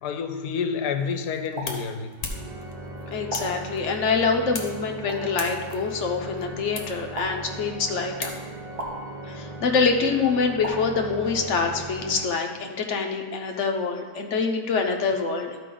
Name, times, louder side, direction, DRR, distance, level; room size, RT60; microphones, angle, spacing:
voice 1, 0.0-2.1, left 6 dB, 85° left, 7 dB, 1.3 m, -29 dB
sound 1, 1.0-8.8, left 3 dB, 35° left, 0.7 m, -40 dB
sound 2, 1.5-1.7 3.3-3.4 5.1-5.2 7.1-7.3 8.8-8.9 10.6-10.8, right 1 dB, 75° right, 1.9 m, -32 dB
Organ, 2.2-12.9, right 2 dB, 35° right, 0.7 m, -38 dB
voice 2, 3.1-8.3 9.2-15.6, left 5 dB, 55° left, 3 dB, 1.0 m, -25 dB
12.5 x 4.9 x 3.8 m, 1.4 s
omnidirectional pair, 1.7 m